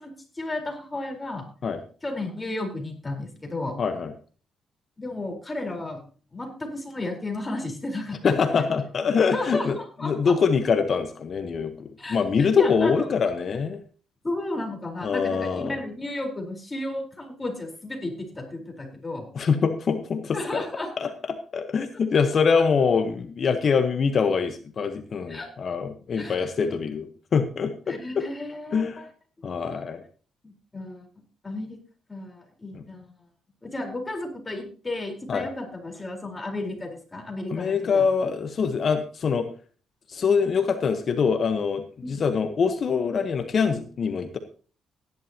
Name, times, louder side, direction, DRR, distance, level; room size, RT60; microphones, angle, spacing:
voice 1, 0.0-1.4 2.0-3.8 5.0-6.0 6.3-8.7 9.2-10.3 12.0-13.0 14.2-19.3 20.3-20.9 22.5-22.6 25.3-25.5 26.2-26.3 27.9-29.0 30.4-31.1 31.4-31.8 32.1-33.1 33.6-38.3 42.0-42.2, left 2 dB, 20° left, 2 dB, 4.2 m, -33 dB
voice 2, 3.8-4.1 8.2-9.8 10.0-13.8 15.0-15.8 19.3-20.6 21.0-28.2 28.7-29.0 29.4-30.0 32.7-32.8 35.3-35.5 37.5-39.5 40.1-44.4, left 5 dB, 50° left, 8 dB, 1.1 m, -24 dB
16.5 x 11.0 x 2.9 m, 0.39 s
cardioid pair, 90°, 0 cm